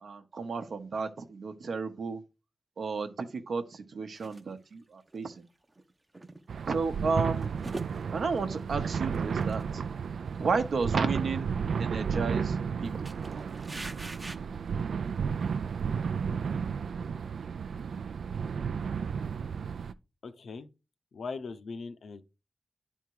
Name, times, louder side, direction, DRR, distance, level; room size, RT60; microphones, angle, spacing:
voice 1, 0.0-2.2 2.8-5.5 6.7-7.5 8.1-9.8 10.4-11.5 11.8-13.1, right 4 dB, 65° right, 0.8 m, -32 dB
sound 1, 4.2-4.4 5.1-5.2 5.6-6.8 7.2-8.8 9.1-9.6 10.0-10.1 10.4-10.7 11.1-11.5 11.9-12.7 13.0-14.4, right 2 dB, 20° right, 0.6 m, -44 dB
sound 2, 6.5-19.9, right 6 dB, 90° right, 0.4 m, -33 dB
voice 2, 20.2-20.7 21.1-22.2, left 4 dB, 70° left, 0.8 m, -40 dB
10.0 x 3.6 x 4.6 m
wide cardioid pair, 170°, 0 cm